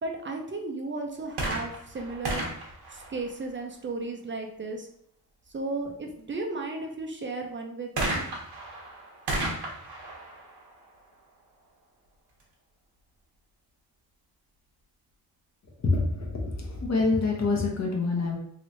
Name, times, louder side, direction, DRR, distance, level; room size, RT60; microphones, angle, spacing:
voice 1, 0.0-2.5 2.9-4.9 5.5-8.2, right 3 dB, 30° right, 2 dB, 0.4 m, -34 dB
sound 1, 1.3-3.9 8.0-11.6 12.4-12.5, right 1 dB, 90° right, 0.9 m, -34 dB
voice 2, 15.8-18.4, left 3 dB, 45° left, -1 dB, 0.8 m, -26 dB
3.1 x 3.1 x 2.6 m, 0.69 s
wide cardioid pair, 145°, 38 cm